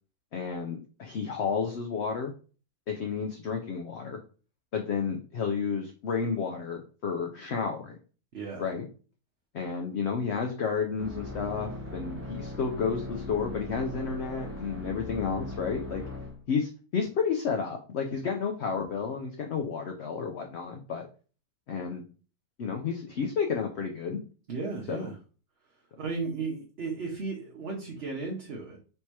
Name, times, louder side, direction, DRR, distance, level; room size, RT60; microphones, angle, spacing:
voice 1, 0.3-2.3 2.9-4.2 4.7-7.9 8.6-8.9 9.5-16.0 16.5-21.1 21.7-22.0 22.6-24.2 24.9-25.0, left 5 dB, 60° left, 3 dB, 0.7 m, -31 dB
voice 2, 8.3-8.7 24.5-25.2 26.0-28.8, right 4 dB, 50° right, -1 dB, 1.0 m, -35 dB
sound 1, 11.0-16.4, left 2 dB, 15° right, 0.4 m, -39 dB
3.4 x 2.8 x 4.6 m, 0.38 s
omnidirectional pair, 1.6 m